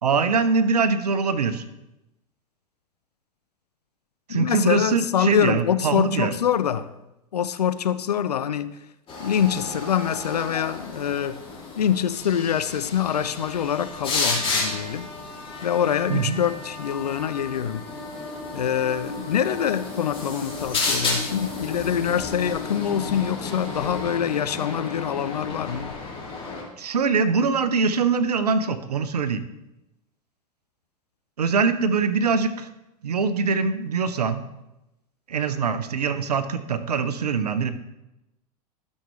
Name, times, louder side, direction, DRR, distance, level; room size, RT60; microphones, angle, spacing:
voice 1, 0.0-1.6 4.3-6.3 16.1-16.4 26.8-29.4 31.4-32.7 33.0-34.4 35.3-37.7, right 5 dB, 90° right, 11 dB, 0.7 m, -23 dB
voice 2, 4.3-6.9 7.3-8.7 9.2-11.4 11.8-15.1 15.6-17.8 18.5-25.9, left 9 dB, 90° left, 13 dB, 0.6 m, -25 dB
sound 1, 9.1-26.6, left 3 dB, 25° left, 2.8 m, -32 dB
12.0 x 6.4 x 3.2 m, 0.94 s
hypercardioid pair, 100°, 20 cm